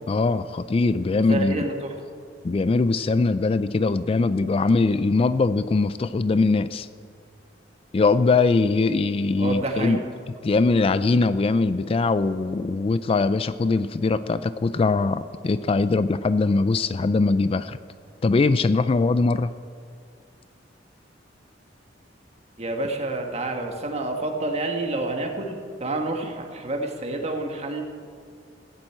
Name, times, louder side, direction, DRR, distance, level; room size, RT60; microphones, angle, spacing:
voice 1, 0.1-1.7 2.4-6.9 7.9-10.0 10.4-17.8 18.2-19.5, left 3 dB, 30° left, 14 dB, 0.3 m, -21 dB
voice 2, 1.3-1.9 9.4-10.0 22.6-27.8, right 2 dB, 35° right, 2 dB, 1.7 m, -28 dB
15.0 x 7.7 x 8.6 m, 2.2 s
head